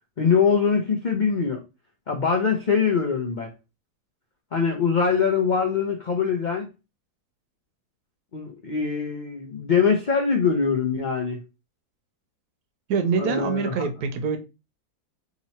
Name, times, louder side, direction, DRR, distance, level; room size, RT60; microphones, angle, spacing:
voice 1, 0.2-1.6 2.1-3.5 4.5-6.7 8.3-11.4 13.2-13.9, left 6 dB, 75° left, 0.4 m, -23 dB
voice 2, 12.9-14.4, right 6 dB, 80° right, 1.2 m, -25 dB
3.0 x 2.8 x 4.1 m
omnidirectional pair, 1.7 m